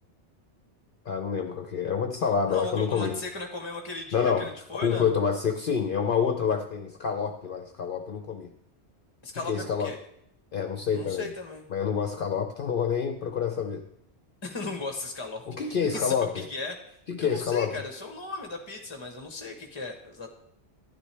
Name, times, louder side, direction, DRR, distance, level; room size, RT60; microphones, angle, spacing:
voice 1, 1.0-3.2 4.1-8.5 9.5-9.9 10.5-11.3 11.7-13.8 15.5-16.5 17.1-17.8, left 6 dB, 55° left, 5 dB, 0.8 m, -27 dB
voice 2, 2.5-5.1 9.2-10.0 10.9-11.6 14.4-20.3, left 3 dB, 25° left, 3 dB, 0.9 m, -37 dB
11.5 x 10.0 x 3.3 m, 0.75 s
omnidirectional pair, 1.2 m